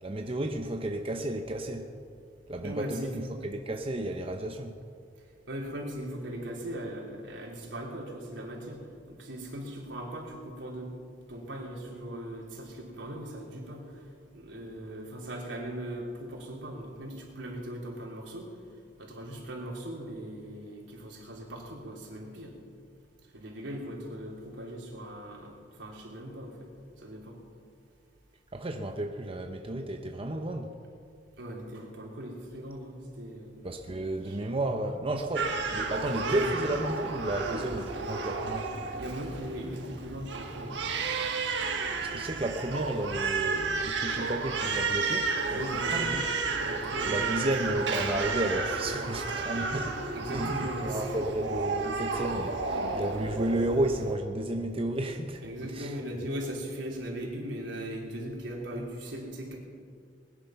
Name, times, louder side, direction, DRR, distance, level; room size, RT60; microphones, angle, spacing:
voice 1, 0.0-1.9 2.5-4.8 28.5-30.7 33.6-38.7 41.6-46.2 47.0-50.0 50.3-55.4 55.7-55.9, right 1 dB, 30° right, 4 dB, 0.8 m, -32 dB
voice 2, 2.6-3.2 5.5-10.9 11.3-14.1 14.3-18.5 19.0-22.5 23.3-26.7 27.0-27.4 31.4-33.6 34.2-34.4 36.2-36.5 39.0-40.8 45.4-46.3 46.6-47.8 50.1-51.2 55.4-59.6, right 1 dB, 85° right, -2 dB, 3.7 m, -39 dB
Crying sobbing, 35.3-54.1, right 4 dB, 70° right, 1.5 m, -32 dB
20.5 x 10.5 x 5.9 m, 2.3 s
head